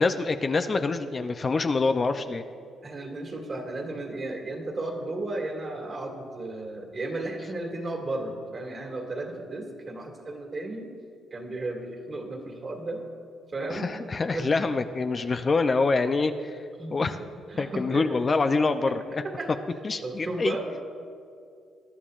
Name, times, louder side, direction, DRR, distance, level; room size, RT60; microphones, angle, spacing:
voice 1, 0.0-2.4 13.7-16.6 16.9-17.1 17.6-19.2 19.8-20.5, left 3 dB, 35° left, 8 dB, 0.5 m, -25 dB
voice 2, 2.8-10.9 11.3-13.0 13.5-14.6 16.8-17.2 17.5-18.2 18.9-20.8, right 2 dB, 40° right, 2 dB, 2.1 m, -34 dB
21.5 x 11.0 x 2.5 m, 2.3 s
cardioid pair, 90°, 0 cm